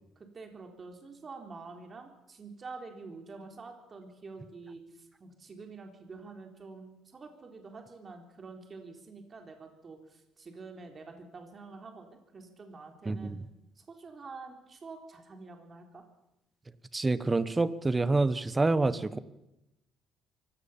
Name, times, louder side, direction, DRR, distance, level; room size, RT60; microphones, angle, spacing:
voice 1, 0.3-13.4 13.8-16.0, right 4 dB, 35° right, 4 dB, 3.9 m, -47 dB
voice 2, 13.0-13.4 16.9-19.2, right 3 dB, 20° right, 14 dB, 1.3 m, -27 dB
24.0 x 17.0 x 7.4 m, 0.92 s
cardioid pair, 105°, 0 cm